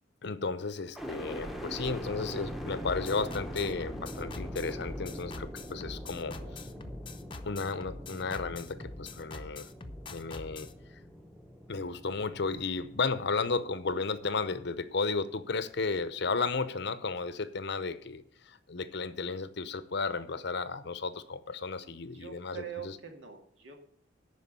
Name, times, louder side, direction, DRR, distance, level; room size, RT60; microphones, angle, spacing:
voice 1, 0.2-6.6 7.4-9.7 10.1-10.7 11.7-23.0, left 4 dB, 60° left, 0.7 m, -34 dB
sound 1, 0.9-15.0 15.5-16.2, equal, ahead, 0.9 m, -43 dB
sound 2, 2.8-10.7, left 3 dB, 25° left, 0.7 m, -44 dB
voice 2, 21.8-23.8, right 8 dB, 75° right, 2.2 m, -45 dB
11.5 x 4.7 x 8.2 m
head